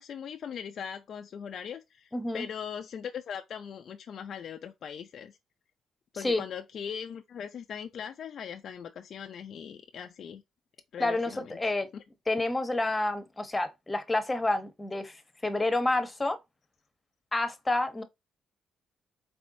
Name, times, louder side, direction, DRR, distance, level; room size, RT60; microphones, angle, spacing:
voice 1, 0.0-5.4 6.1-10.4 10.9-12.0, left 7 dB, 60° left, 0.4 m, -40 dB
voice 2, 2.1-2.5 6.1-6.4 11.0-11.9 12.3-16.4 17.3-18.0, left 2 dB, 15° left, 0.9 m, -29 dB
4.4 x 3.4 x 2.6 m
cardioid pair, 90°, 0 cm